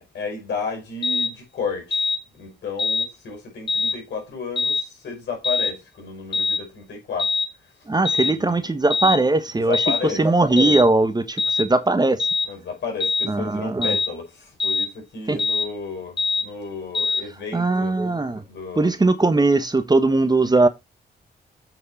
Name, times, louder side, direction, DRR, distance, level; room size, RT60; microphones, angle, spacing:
voice 1, 0.0-7.9 8.2-8.7 9.5-10.3 12.4-18.0 18.4-18.9, left 5 dB, 75° left, 4.9 m, -33 dB
sound 1, 1.0-1.3 1.9-2.2 2.8-3.1 3.7-4.0 4.6-4.8 5.4-5.7 6.3-6.6 7.2-7.5 8.1-8.3 8.9-9.2 9.7-10.0 10.6-10.8 11.4-11.7 12.2-12.5 13.0-13.3 13.8-14.1 14.6-14.9 15.4-15.7 16.2-16.5 16.9-17.2, left 4 dB, 30° left, 2.1 m, -23 dB
voice 2, 7.9-9.8 10.2-12.3 13.3-14.0 15.3-15.4 17.5-18.4 18.8-20.7, right 2 dB, 20° right, 1.1 m, -19 dB
8.0 x 4.7 x 4.1 m
cardioid pair, 65°, 18 cm